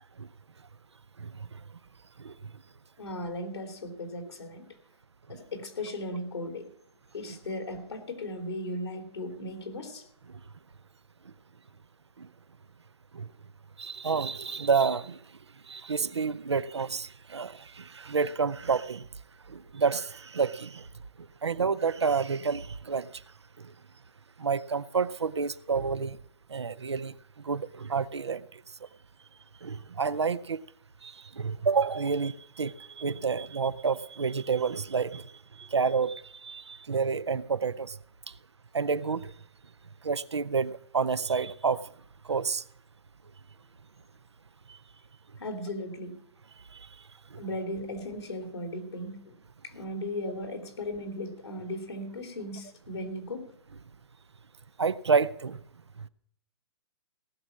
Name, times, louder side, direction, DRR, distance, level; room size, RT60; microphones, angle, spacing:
voice 1, 1.2-1.6 2.2-2.5 5.3-5.4 7.3-7.4 10.3-10.4 11.3-11.4 12.2-12.3 13.1-13.3 13.8-15.2 15.6-19.1 19.5-20.9 21.2-23.2 23.6-23.7 24.4-26.2 26.5-28.6 29.6-30.6 31.0-38.0 38.3-38.4 38.7-39.3 40.0-41.9 42.2-42.6 44.7-44.8 46.7-46.9 47.3-47.4 54.8-55.6 56.0-56.1, right 5 dB, 90° right, 0.6 m, -29 dB
voice 2, 3.0-4.7 5.3-6.7 7.1-10.1 45.4-46.2 47.4-49.3 49.6-53.5, left 1 dB, 80° left, 3.2 m, -37 dB
18.0 x 6.3 x 7.1 m
figure-of-eight pair, 120°, 14 cm